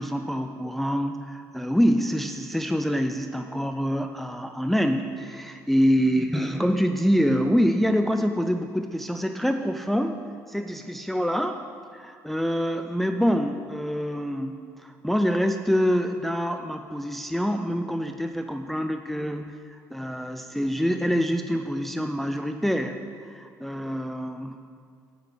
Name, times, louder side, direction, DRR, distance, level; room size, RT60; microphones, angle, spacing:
voice 1, 0.0-10.2 10.5-11.6 11.9-24.6, equal, ahead, 6 dB, 0.4 m, -26 dB
8.1 x 5.8 x 6.8 m, 2.3 s
cardioid pair, 100°, 8 cm